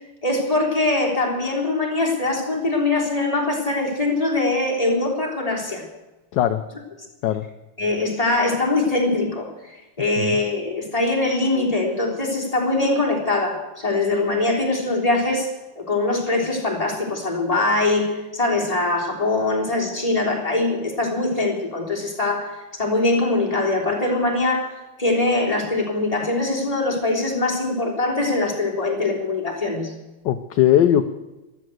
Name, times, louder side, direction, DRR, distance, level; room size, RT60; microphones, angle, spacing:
voice 1, 0.2-5.8 7.8-15.5 15.7-29.9, left 2 dB, 15° left, -1 dB, 3.4 m, -22 dB
voice 2, 30.2-31.0, left 11 dB, 65° left, 9 dB, 1.2 m, -19 dB
14.0 x 13.0 x 7.8 m, 1.1 s
omnidirectional pair, 2.3 m